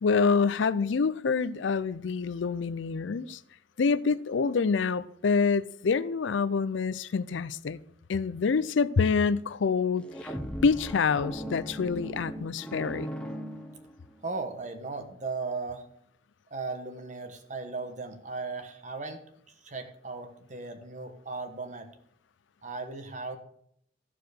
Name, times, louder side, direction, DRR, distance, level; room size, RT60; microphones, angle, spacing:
voice 1, 0.0-3.4 3.8-7.8 8.1-10.3 10.6-13.1, left 5 dB, 80° left, 0.5 m, -26 dB
sound 1, 10.0-14.2, equal, 5° left, 0.9 m, -38 dB
voice 2, 14.2-15.8 16.5-19.2 19.6-21.9 22.6-23.4, right 3 dB, 40° right, 1.2 m, -36 dB
14.0 x 4.8 x 6.4 m
head